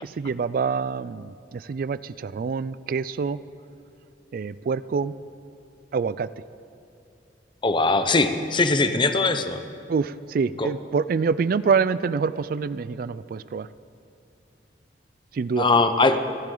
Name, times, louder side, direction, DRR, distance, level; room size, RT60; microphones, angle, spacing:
voice 1, 0.0-3.4 4.3-5.1 5.9-6.3 9.9-13.7 15.3-15.7, right 5 dB, 55° right, 17 dB, 0.3 m, -26 dB
voice 2, 7.6-9.6 10.6-10.7 15.6-16.2, left 3 dB, 30° left, 9 dB, 0.7 m, -21 dB
29.0 x 10.5 x 3.9 m, 2.6 s
head